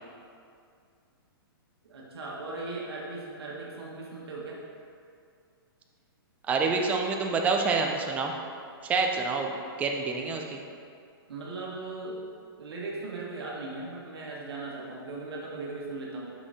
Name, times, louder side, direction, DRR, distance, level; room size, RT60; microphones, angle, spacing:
voice 1, 1.8-4.6 11.3-12.2 12.6-16.3, right 3 dB, 85° right, -4 dB, 1.4 m, -38 dB
voice 2, 6.5-8.3 8.8-9.5 9.8-10.6, right 4 dB, 10° right, 2 dB, 0.4 m, -27 dB
5.9 x 5.6 x 4.1 m, 2.3 s
hypercardioid pair, 155°, 13 cm